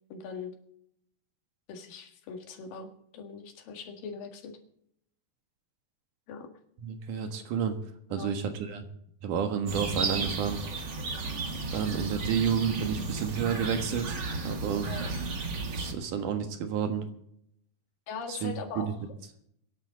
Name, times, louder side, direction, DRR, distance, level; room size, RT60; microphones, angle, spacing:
voice 1, 0.1-0.6 1.7-4.6 6.3-6.5 8.1-8.4 14.9-15.1 18.1-19.0, left 5 dB, 85° left, 5 dB, 3.5 m, -41 dB
voice 2, 6.8-7.8 8.1-8.8 9.2-10.6 11.7-14.9 15.7-17.1 18.3-18.9, right 7 dB, 70° right, 6 dB, 2.9 m, -30 dB
sound 1, 9.7-15.9, right 3 dB, 40° right, 1.9 m, -33 dB
22.5 x 11.0 x 3.9 m, 0.71 s
omnidirectional pair, 3.9 m